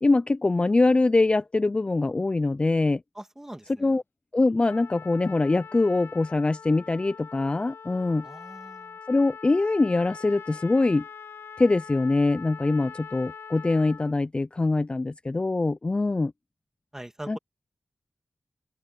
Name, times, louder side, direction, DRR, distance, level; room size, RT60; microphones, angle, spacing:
voice 1, 0.0-3.0 3.8-4.0 4.3-8.3 9.1-11.0 11.6-16.3 17.3-17.4, left 3 dB, 25° left, 0.4 m, -23 dB
voice 2, 3.2-4.0 8.2-9.0 16.9-17.4, right 1 dB, 10° right, 2.0 m, -42 dB
Trumpet, 4.7-14.2, left 6 dB, 80° left, 0.5 m, -43 dB
open air
wide cardioid pair, 95°, 4 cm